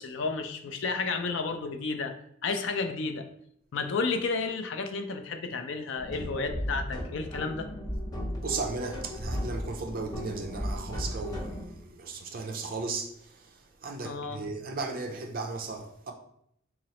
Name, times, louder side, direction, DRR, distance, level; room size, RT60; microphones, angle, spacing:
voice 1, 0.0-2.1 2.4-3.3 3.7-7.7 14.0-14.4, left 4 dB, 65° left, 0.4 m, -32 dB
sound 1, 6.0-11.6, equal, 20° left, 0.7 m, -35 dB
voice 2, 8.4-13.5 13.8-16.1, right 3 dB, 45° right, 0.4 m, -36 dB
3.9 x 3.0 x 2.8 m
head